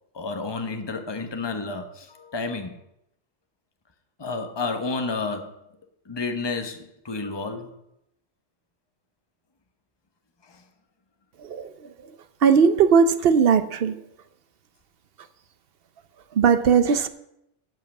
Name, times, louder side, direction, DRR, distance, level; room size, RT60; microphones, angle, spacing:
voice 1, 0.1-2.8 4.2-5.5 6.1-7.7 10.4-10.6, left 3 dB, 20° left, 6 dB, 1.0 m, -31 dB
voice 2, 12.4-14.0 16.4-17.1, right 6 dB, 55° right, 12 dB, 0.9 m, -18 dB
11.0 x 5.7 x 8.3 m, 0.79 s
omnidirectional pair, 1.3 m